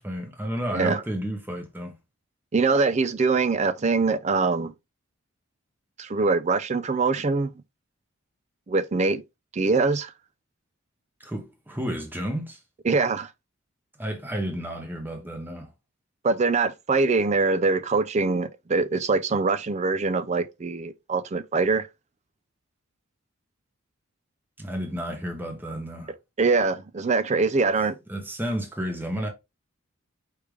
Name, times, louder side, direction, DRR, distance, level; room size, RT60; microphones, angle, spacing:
voice 1, 0.0-1.9 11.2-12.6 14.0-15.7 24.6-26.1 28.1-29.3, equal, 10° right, 1.0 m, -31 dB
voice 2, 0.7-1.0 2.5-4.7 6.0-7.5 8.7-9.2 9.5-10.1 12.8-13.3 16.2-21.9 26.4-28.0, right 4 dB, 35° right, 0.4 m, -23 dB
5.0 x 3.3 x 3.2 m
head